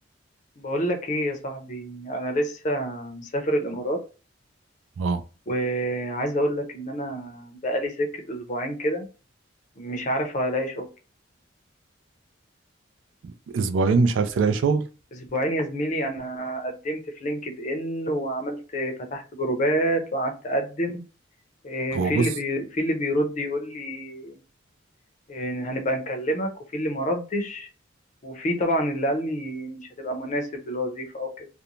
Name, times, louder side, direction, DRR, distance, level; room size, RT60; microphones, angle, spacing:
voice 1, 0.6-4.0 5.5-9.1 9.8-10.9 15.2-21.0 21.6-24.4 25.3-27.7 28.2-31.5, equal, 40° left, 0.6 m, -28 dB
voice 2, 13.2-14.8 21.9-22.3, right 4 dB, 70° right, 0.3 m, -22 dB
2.5 x 2.1 x 2.9 m
head